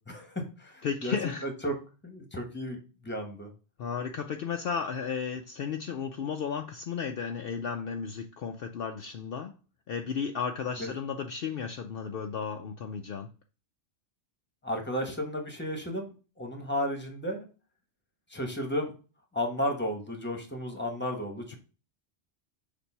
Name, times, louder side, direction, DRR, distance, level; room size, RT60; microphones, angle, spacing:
voice 1, 0.1-1.7 2.0-3.5 10.8-10.9 14.6-17.5 18.3-18.9 19.3-21.6, equal, 10° left, 4 dB, 1.2 m, -33 dB
voice 2, 0.8-1.4 3.8-9.6 9.9-13.3, left 6 dB, 60° left, 4 dB, 0.7 m, -34 dB
6.9 x 2.7 x 5.5 m, 0.34 s
omnidirectional pair, 1.2 m